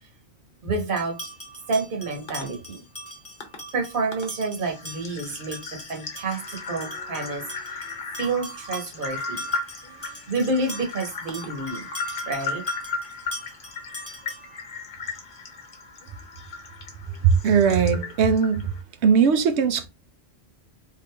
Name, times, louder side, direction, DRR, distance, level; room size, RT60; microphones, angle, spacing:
voice 1, 0.6-1.3 1.7-2.8 3.7-5.6 5.9-7.9 8.2-9.4 10.3-11.9 12.3-12.6, right 3 dB, 55° right, 1.1 m, -29 dB
sound 1, 1.0-14.6, equal, 15° left, 0.6 m, -42 dB
sound 2, 2.3-2.4 3.4-3.6 4.1-4.3 4.6-18.8, left 4 dB, 55° left, 1.0 m, -36 dB
voice 2, 17.2-18.7 19.0-19.9, right 6 dB, 85° right, 0.9 m, -19 dB
3.6 x 2.4 x 3.2 m
omnidirectional pair, 1.1 m